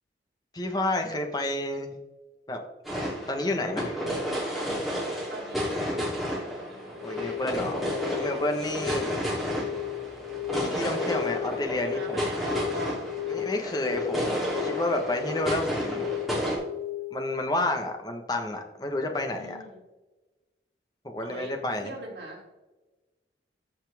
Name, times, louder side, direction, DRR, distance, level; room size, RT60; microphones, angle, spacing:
voice 1, 0.5-1.9 2.5-2.6 3.3-4.0 7.0-9.1 10.5-12.2 13.3-16.1 17.1-19.6 21.0-21.9, left 1 dB, 20° left, 4 dB, 1.2 m, -30 dB
sound 1, 2.8-16.6, equal, ahead, 3.0 m, -32 dB
voice 2, 5.3-7.0 9.1-9.9 11.8-13.0 19.3-19.8 21.2-21.5 21.8-22.4, right 2 dB, 75° right, -2 dB, 3.3 m, -42 dB
sound 2, 6.9-17.4, left 15 dB, 55° right, 0.8 m, -36 dB
14.0 x 5.7 x 3.5 m, 1.1 s
head